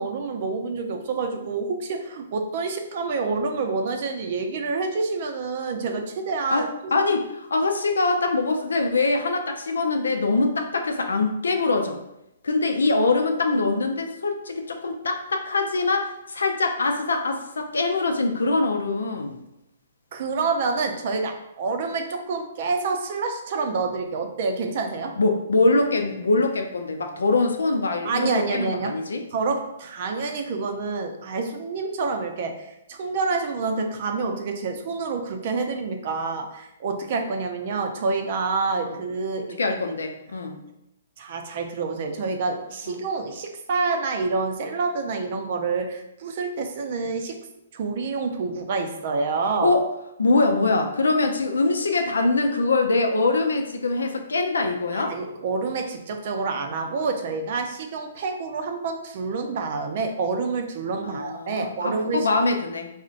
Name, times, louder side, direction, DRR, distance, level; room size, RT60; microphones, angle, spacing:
voice 1, 0.0-6.7 20.1-25.1 28.0-29.0 29.3-39.6 41.2-47.5 47.7-49.7 54.9-62.3, right 4 dB, 50° right, 4 dB, 0.4 m, -27 dB
voice 2, 6.5-12.0 12.4-19.4 25.2-29.2 39.4-40.6 49.6-49.8 50.2-55.1 61.0-62.9, left 3 dB, 90° left, 4 dB, 0.4 m, -23 dB
3.8 x 2.1 x 2.4 m, 0.85 s
hypercardioid pair, 145°, 0 cm